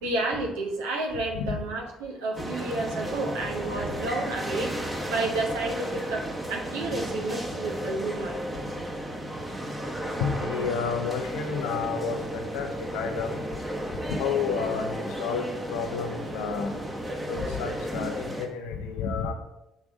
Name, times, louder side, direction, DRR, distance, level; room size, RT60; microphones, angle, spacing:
voice 1, 0.0-8.4, right 2 dB, 75° right, 1 dB, 1.0 m, -31 dB
sound 1, 2.4-18.5, right 1 dB, 15° right, 1.1 m, -34 dB
voice 2, 10.2-13.4 14.2-16.7 17.3-19.3, left 6 dB, 70° left, 5 dB, 0.7 m, -30 dB
6.5 x 3.6 x 4.9 m, 0.88 s
figure-of-eight pair, 50°, 0 cm